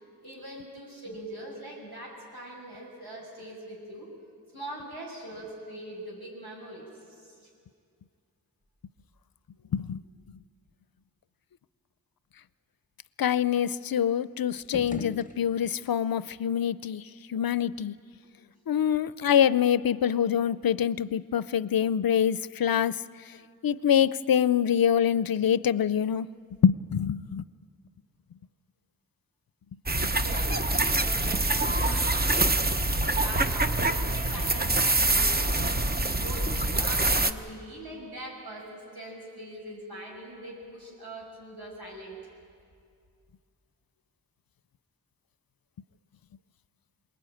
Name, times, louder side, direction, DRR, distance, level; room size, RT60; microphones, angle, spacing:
voice 1, 0.2-4.1 4.5-7.5 30.1-42.2, right 1 dB, 85° right, -4 dB, 6.5 m, -42 dB
voice 2, 13.2-17.9 18.7-23.0 23.6-26.3 26.6-27.4, left 9 dB, 70° left, 17 dB, 0.5 m, -25 dB
sound 1, 14.5-16.0, left 3 dB, 20° left, 0.9 m, -41 dB
sound 2, 29.9-37.3, right 2 dB, 25° right, 0.8 m, -25 dB
22.5 x 20.0 x 9.1 m, 2.3 s
wide cardioid pair, 55°, 37 cm